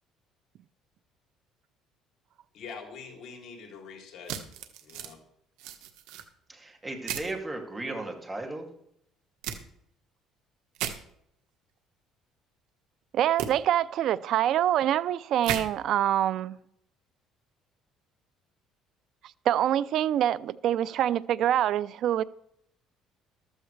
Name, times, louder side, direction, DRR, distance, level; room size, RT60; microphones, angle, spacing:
voice 1, 2.5-4.4 4.8-5.2, left 5 dB, 60° left, 2 dB, 3.1 m, -44 dB
sound 1, 4.3-5.1 5.6-6.2 7.1-7.3 9.4-9.6 10.8-11.0 13.4-13.5 15.4-15.6, right 10 dB, 85° right, 1.3 m, -34 dB
voice 2, 6.5-8.7, right 2 dB, 15° right, 2 dB, 2.5 m, -36 dB
voice 3, 13.1-16.6 19.5-22.2, right 11 dB, 60° right, 18 dB, 0.5 m, -25 dB
14.5 x 13.0 x 3.3 m, 0.73 s
cardioid pair, 115°, 0 cm